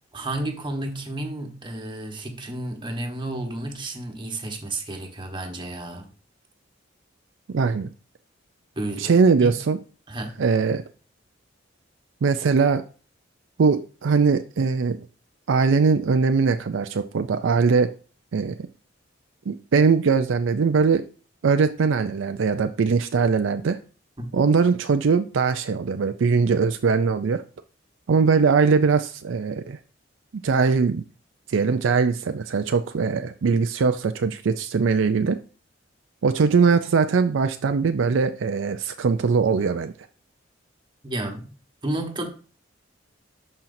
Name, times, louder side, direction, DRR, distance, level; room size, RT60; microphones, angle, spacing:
voice 1, 0.1-6.1 8.7-9.1 9.4-9.6 10.1-10.4 24.2-24.4 41.0-41.5 41.8-42.3, right 1 dB, 25° right, 1.2 m, -31 dB
voice 2, 7.5-7.9 9.0-9.8 10.4-10.8 12.2-12.8 13.6-15.0 15.5-17.9 18.3-18.7 19.5-21.0 21.4-23.8 24.3-27.4 28.1-29.8 30.4-31.0 31.5-35.4 36.2-39.9, right 5 dB, 70° right, 0.4 m, -21 dB
11.5 x 4.4 x 2.6 m
head